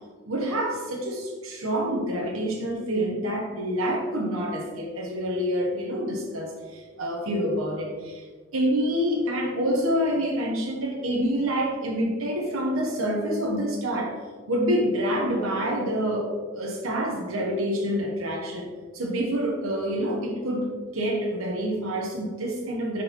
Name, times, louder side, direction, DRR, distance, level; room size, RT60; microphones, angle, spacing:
voice 1, 0.3-8.2 8.5-14.2 14.5-20.7 20.9-23.0, equal, 80° right, -1 dB, 0.9 m, -27 dB
9.1 x 3.9 x 2.9 m, 1.5 s
head